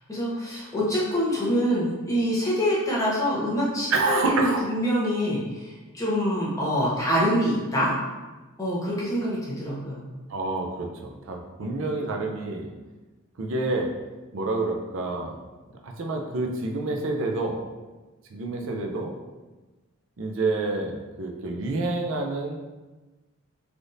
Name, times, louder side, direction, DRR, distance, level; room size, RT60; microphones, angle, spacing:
voice 1, 0.1-7.9 8.6-10.0, equal, 15° left, -7 dB, 0.7 m, -25 dB
voice 2, 3.9-4.7 10.3-12.7 13.4-13.9 14.3-15.4 15.8-17.6 18.3-19.1 20.2-22.5, right 2 dB, 70° right, 2 dB, 0.4 m, -28 dB
3.4 x 2.5 x 2.6 m, 1.2 s
head